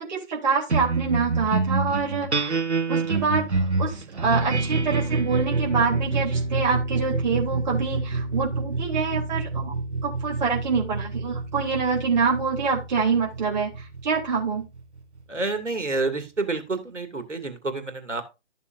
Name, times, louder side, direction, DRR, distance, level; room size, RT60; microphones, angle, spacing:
voice 1, 0.1-2.6 2.9-9.7 10.0-14.7, right 5 dB, 40° right, -3 dB, 3.4 m, -26 dB
sound 1, 0.7-15.4, right 3 dB, 70° right, 2.0 m, -27 dB
voice 2, 15.3-18.2, right 3 dB, 85° right, 7 dB, 2.6 m, -28 dB
13.5 x 7.3 x 2.6 m, 0.27 s
figure-of-eight pair, 150°, 35 cm